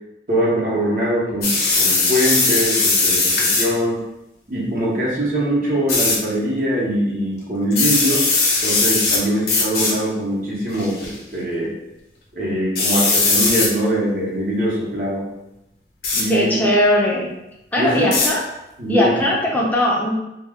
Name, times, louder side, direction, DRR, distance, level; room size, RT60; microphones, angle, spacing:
voice 1, 0.3-1.5 1.7-4.0 4.5-8.3 8.6-11.7 12.3-15.2 16.1-16.7 17.7-18.0 18.8-19.2, equal, 50° right, -5 dB, 0.8 m, -22 dB
sound 1, 1.4-3.7 5.9-6.2 7.7-9.2 9.5-9.9 10.7-11.1 12.8-13.7 16.0-16.3 18.1-18.3, left 3 dB, 55° left, 0.6 m, -18 dB
voice 2, 16.3-17.3 17.7-18.4 18.9-20.1, left 1 dB, 10° left, -4 dB, 0.5 m, -18 dB
2.2 x 2.2 x 3.4 m, 0.90 s
head